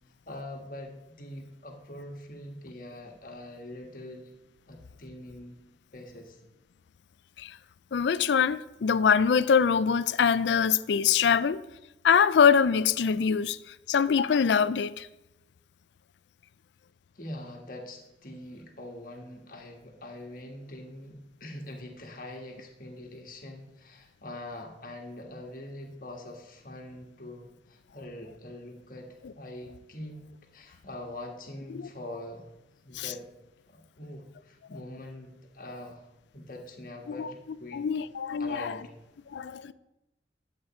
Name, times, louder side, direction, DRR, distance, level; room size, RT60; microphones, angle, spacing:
voice 1, 0.3-4.3 4.7-5.6 5.9-6.4 17.1-29.1 29.3-30.3 30.5-32.4 32.8-33.3 33.7-36.1 36.3-37.9 38.4-38.9, left 1 dB, 50° left, 1.6 m, -43 dB
voice 2, 7.9-11.6 12.0-13.6 13.9-15.1 31.7-31.8 32.9-33.1 37.1-37.3 37.7-38.8 39.3-39.7, left 6 dB, 80° left, 0.4 m, -24 dB
10.5 x 8.1 x 4.3 m
head